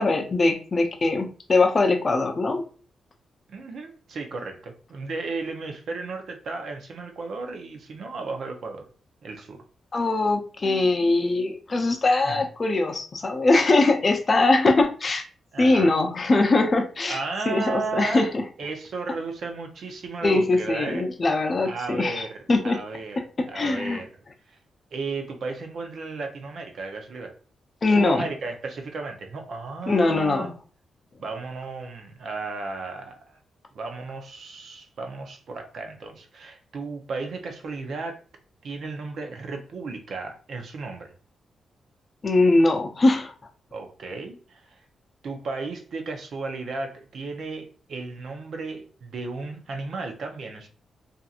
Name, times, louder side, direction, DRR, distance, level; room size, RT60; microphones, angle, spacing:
voice 1, 0.0-2.6 9.9-15.2 15.6-17.2 17.5-18.4 20.2-22.8 23.4-24.0 27.8-28.2 29.9-30.5 42.2-43.3, left 2 dB, 35° left, 5 dB, 0.5 m, -21 dB
voice 2, 3.5-8.9 9.2-9.6 12.2-12.4 15.5-16.0 17.1-18.3 18.6-21.1 21.6-22.4 22.6-23.2 23.5-24.1 24.5-24.6 24.9-27.3 27.9-30.5 31.2-33.4 33.7-38.2 38.6-41.1 43.7-44.8 45.2-50.7, right 3 dB, 65° right, 3 dB, 0.6 m, -34 dB
2.7 x 2.5 x 2.4 m, 0.39 s
cardioid pair, 90°, 0 cm